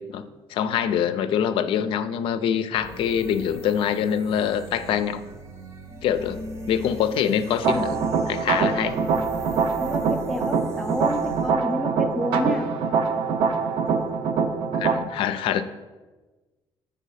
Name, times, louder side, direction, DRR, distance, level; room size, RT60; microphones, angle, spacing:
voice 1, 0.5-5.2 6.0-6.4 6.7-8.0 8.3-9.0 14.8-15.6, left 9 dB, 80° left, 11 dB, 0.4 m, -24 dB
sound 1, 2.8-11.5, right 1 dB, 35° right, 0.7 m, -38 dB
sound 2, 7.6-15.0, right 5 dB, 85° right, 0.6 m, -24 dB
voice 2, 9.8-12.7, left 1 dB, 5° left, 5 dB, 0.4 m, -29 dB
8.4 x 3.4 x 5.6 m, 1.2 s
cardioid pair, 175°, 9 cm